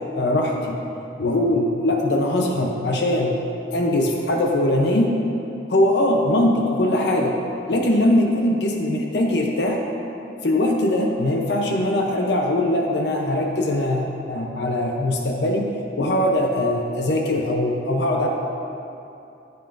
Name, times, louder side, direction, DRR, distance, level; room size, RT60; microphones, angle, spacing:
voice 1, 0.1-0.8 1.2-3.4 3.7-5.1 5.7-7.4 7.7-9.8 10.4-15.7 16.0-18.3, left 1 dB, 65° left, 1 dB, 0.7 m, -21 dB
10.5 x 8.1 x 2.5 m, 2.8 s
head